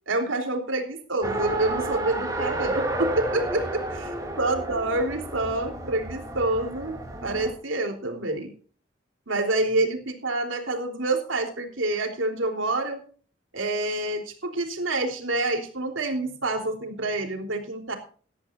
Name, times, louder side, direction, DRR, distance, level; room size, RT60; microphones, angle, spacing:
voice 1, 0.1-3.6 3.9-4.1 4.4-8.5 9.3-13.0 13.5-18.0, right 2 dB, 85° right, 4 dB, 3.6 m, -27 dB
Race car auto racing, 1.2-7.5, right 1 dB, 15° right, 3.2 m, -31 dB
18.5 x 13.0 x 2.6 m, 0.42 s
head